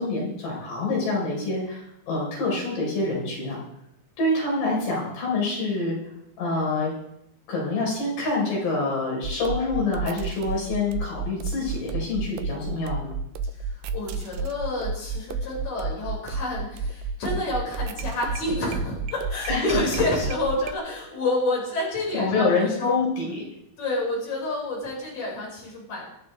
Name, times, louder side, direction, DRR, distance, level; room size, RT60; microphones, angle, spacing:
voice 1, 0.0-3.6 4.2-6.0 6.4-6.9 7.5-13.1 19.5-19.8 22.1-23.4, left 3 dB, 90° left, -3 dB, 6.5 m, -26 dB
sound 1, 9.2-20.7, right 4 dB, 85° right, 2.9 m, -32 dB
voice 2, 13.6-22.9 23.8-26.1, left 2 dB, 45° left, -4 dB, 6.9 m, -29 dB
27.0 x 10.5 x 3.4 m, 0.79 s
omnidirectional pair, 4.6 m